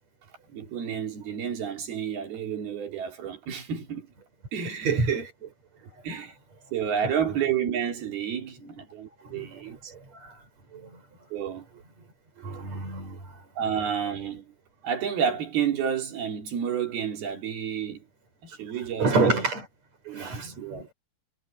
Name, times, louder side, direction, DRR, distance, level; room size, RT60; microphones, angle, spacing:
voice 1, 0.5-4.1 4.5-5.0 6.0-6.4 6.7-9.9 11.3-11.7 13.6-14.5 14.8-18.0 18.4-19.3 20.1-20.9, right 8 dB, 85° right, 5.4 m, -30 dB
voice 2, 4.6-5.5 8.6-8.7 9.2-9.8 10.1-10.3 10.7-11.0 12.4-13.3 19.0-19.7 20.1-20.9, right 3 dB, 45° right, 8.1 m, -28 dB
omnidirectional pair, 4.3 m